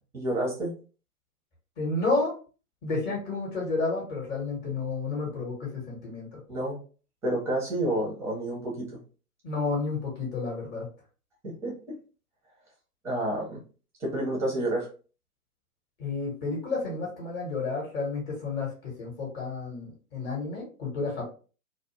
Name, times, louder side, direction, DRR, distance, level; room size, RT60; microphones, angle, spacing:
voice 1, 0.1-0.7 6.5-6.8 7.2-9.0 11.4-11.9 13.0-13.6 14.0-14.9, right 1 dB, 5° right, -3 dB, 0.6 m, -29 dB
voice 2, 1.8-2.3 2.8-6.4 9.4-10.9 16.0-21.2, left 3 dB, 30° left, -3 dB, 0.9 m, -31 dB
2.4 x 2.0 x 2.8 m, 0.37 s
figure-of-eight pair, 115°, 46 cm